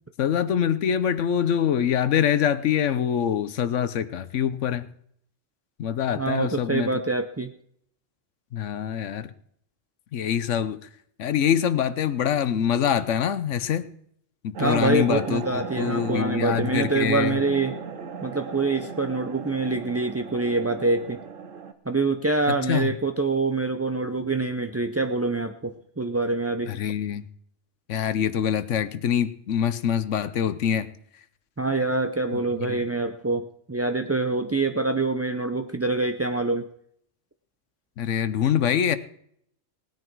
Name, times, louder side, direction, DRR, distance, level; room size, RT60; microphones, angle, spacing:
voice 1, 0.2-4.8 5.8-6.9 8.5-9.3 10.1-10.8 11.2-13.9 14.4-17.4 22.5-22.9 26.7-27.3 27.9-30.9 32.7-32.8 38.0-39.0, left 8 dB, 70° left, 14 dB, 1.1 m, -24 dB
voice 2, 6.2-7.5 14.6-17.8 18.2-21.2 21.9-26.7 31.6-36.7, right 3 dB, 25° right, 6 dB, 0.3 m, -25 dB
sound 1, 14.5-21.7, right 6 dB, 80° right, 1.4 m, -36 dB
18.5 x 9.6 x 4.6 m, 0.67 s
omnidirectional pair, 1.3 m